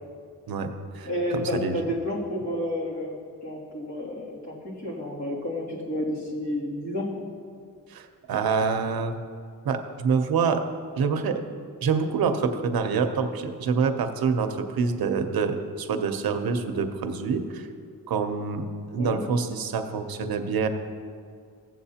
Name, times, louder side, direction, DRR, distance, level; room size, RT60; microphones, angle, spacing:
voice 1, 0.5-1.1 1.3-1.8 7.9-9.2 9.6-10.6 10.9-11.4 11.8-17.7 18.1-18.7 18.9-20.7, right 5 dB, 80° right, 6 dB, 0.8 m, -26 dB
voice 2, 1.0-3.2 3.4-7.1 19.0-19.2, left 1 dB, 50° left, -5 dB, 2.6 m, -30 dB
16.0 x 7.5 x 2.8 m, 2.2 s
wide cardioid pair, 145°, 36 cm